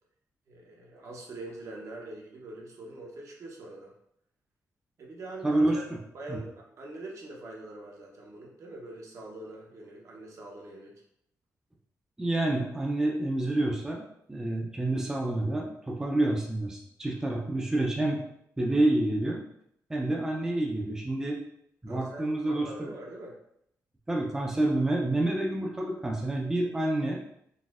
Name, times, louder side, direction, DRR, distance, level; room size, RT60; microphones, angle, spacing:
voice 1, 0.5-3.9 5.0-5.8 6.1-10.9 21.9-23.4, right 2 dB, 60° right, -1 dB, 0.8 m, -43 dB
voice 2, 5.4-6.0 6.3-6.4 12.2-14.0 14.3-18.2 18.6-19.4 19.9-21.4 21.8-22.9 24.1-27.2, right 1 dB, 10° right, -1 dB, 0.4 m, -28 dB
4.0 x 2.6 x 2.4 m, 0.74 s
wide cardioid pair, 130°, 6 cm